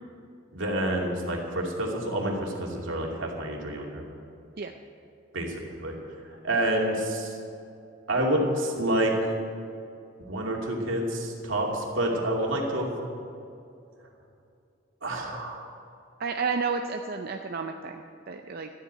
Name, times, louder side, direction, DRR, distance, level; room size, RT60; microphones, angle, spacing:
voice 1, 0.5-4.0 5.3-5.9 6.4-7.4 8.1-9.3 10.3-12.9 15.0-15.6, right 1 dB, 80° right, -1 dB, 2.6 m, -28 dB
voice 2, 16.2-18.7, right 5 dB, 50° right, 5 dB, 0.6 m, -31 dB
13.0 x 8.4 x 8.7 m, 2.6 s
head